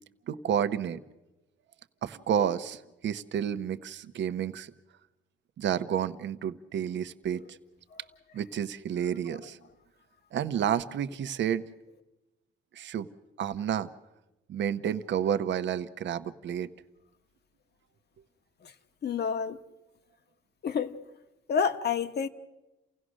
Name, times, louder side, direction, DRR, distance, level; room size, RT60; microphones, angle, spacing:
voice 1, 0.3-1.0 2.0-4.7 5.6-7.4 8.3-9.6 10.3-11.6 12.7-13.1 13.4-13.9 14.5-16.7, right 9 dB, 65° right, 1.0 m, -30 dB
voice 2, 19.0-19.6 20.6-21.0 21.5-22.3, left 6 dB, 55° left, 1.3 m, -29 dB
29.5 x 16.5 x 6.3 m
cardioid pair, 90°, 20 cm